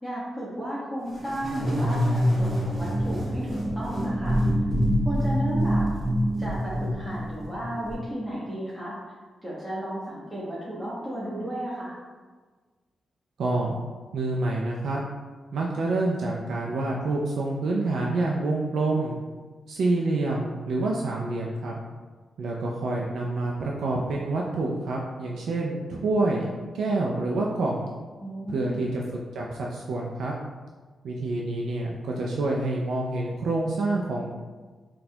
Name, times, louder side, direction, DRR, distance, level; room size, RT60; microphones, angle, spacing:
voice 1, 0.0-4.4 5.0-5.9 6.4-9.0 9.4-12.0 28.2-28.8, equal, ahead, -9 dB, 0.8 m, -33 dB
sound 1, 1.2-7.9, equal, 20° right, 1.3 m, -26 dB
voice 2, 13.4-13.8 14.1-15.0 15.5-19.2 19.7-21.8 22.4-26.5 26.7-27.9 28.5-29.0 29.3-30.3 31.0-34.3, right 2 dB, 80° right, -2 dB, 0.3 m, -27 dB
4.0 x 2.2 x 2.7 m, 1.4 s
cardioid pair, 80°, 0 cm